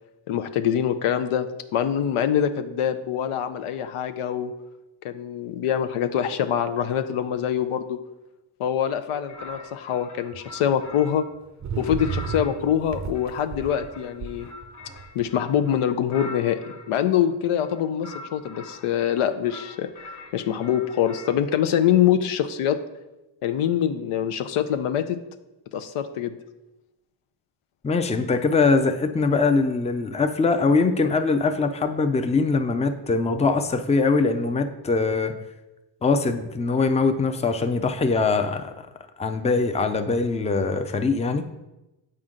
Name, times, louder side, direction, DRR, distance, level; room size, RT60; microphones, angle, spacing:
voice 1, 0.3-1.5 1.7-4.5 5.0-8.0 8.6-11.2 11.8-14.5 15.1-16.6 16.9-22.8 23.4-25.2 25.7-26.3, left 9 dB, 85° left, 8 dB, 0.6 m, -24 dB
sound 1, 9.2-11.3 11.8-16.9 17.6-19.2 19.5-21.4, left 2 dB, 40° left, 0.8 m, -43 dB
sound 2, 10.3-10.4 11.6-15.2, right 6 dB, 35° right, 0.5 m, -33 dB
voice 2, 27.8-35.3 36.0-38.7 39.2-41.4, left 4 dB, 15° left, 8 dB, 0.4 m, -22 dB
7.6 x 4.3 x 3.8 m, 0.99 s
cardioid pair, 85°, 49 cm